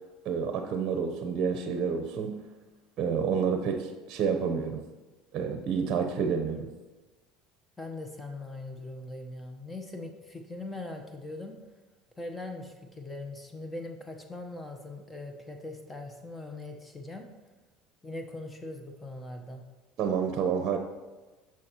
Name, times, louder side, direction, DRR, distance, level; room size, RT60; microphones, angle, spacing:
voice 1, 0.2-2.4 3.0-4.8 5.3-6.7 20.0-20.8, right 6 dB, 50° right, 6 dB, 0.8 m, -29 dB
voice 2, 7.8-11.5 12.2-17.3 18.0-19.6, left 2 dB, 15° left, 4 dB, 1.0 m, -41 dB
11.0 x 6.1 x 3.0 m, 1.2 s
supercardioid pair, 105°, 0 cm